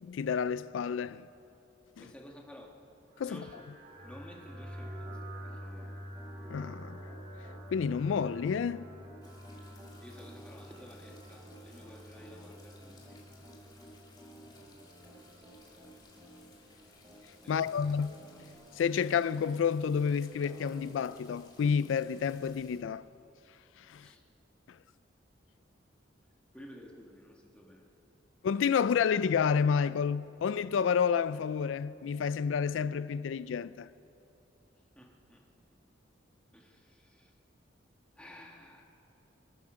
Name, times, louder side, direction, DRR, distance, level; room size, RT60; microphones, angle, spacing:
voice 1, 0.0-1.3 3.2-3.4 6.5-7.0 7.7-8.9 17.5-18.2 18.7-23.0 23.8-24.1 24.7-24.8 28.4-33.9, left 6 dB, 90° left, 0.3 m, -30 dB
voice 2, 2.0-2.8 3.2-3.6 4.0-5.9 9.2-9.6 10.0-13.2 17.4-17.9 24.0-24.2 26.5-27.8 35.0-35.4 36.5-37.3 38.2-38.8, equal, 5° left, 1.6 m, -53 dB
sound 1, 3.1-22.8, equal, 50° right, 2.1 m, -50 dB
Piano, 4.8-20.0 20.4-20.8, equal, 15° right, 2.9 m, -54 dB
sound 2, 9.2-22.8, left 3 dB, 25° left, 2.5 m, -61 dB
24.5 x 9.4 x 6.2 m
head